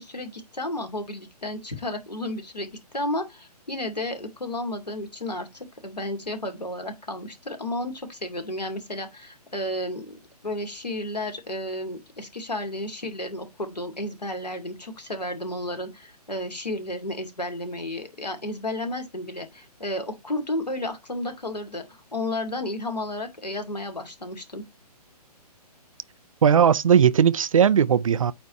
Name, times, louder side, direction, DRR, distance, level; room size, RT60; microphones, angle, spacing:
voice 1, 0.0-24.6, left 1 dB, 80° left, 2.5 m, -32 dB
voice 2, 26.4-28.3, right 8 dB, 55° right, 0.5 m, -18 dB
8.6 x 3.4 x 5.4 m
figure-of-eight pair, 130°, 21 cm